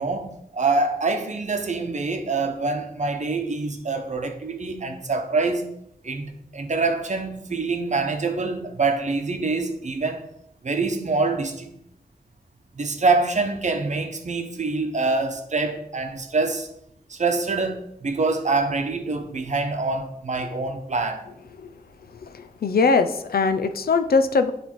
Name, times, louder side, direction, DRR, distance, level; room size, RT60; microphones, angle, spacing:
voice 1, 0.0-5.7 6.0-10.2 10.6-11.7 12.7-16.7 17.1-21.2, right 3 dB, 50° right, 0.9 m, -25 dB
voice 2, 22.2-24.5, left 4 dB, 75° left, 0.6 m, -21 dB
9.7 x 3.4 x 4.4 m
wide cardioid pair, 90°, 16 cm